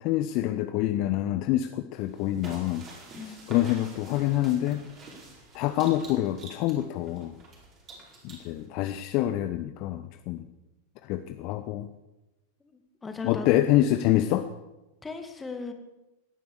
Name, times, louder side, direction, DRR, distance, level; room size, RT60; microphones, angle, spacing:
voice 1, 0.0-2.8 3.2-4.8 5.5-7.4 8.2-10.4 11.0-11.9 13.2-14.5, left 14 dB, 40° left, 9 dB, 0.8 m, -26 dB
sound 1, 1.9-8.7, right 2 dB, 30° right, 4.8 m, -48 dB
voice 2, 3.1-3.5 12.7-13.6 15.0-15.7, left 4 dB, 15° left, 7 dB, 2.0 m, -37 dB
17.5 x 10.0 x 6.9 m, 0.98 s
figure-of-eight pair, 90°, 0 cm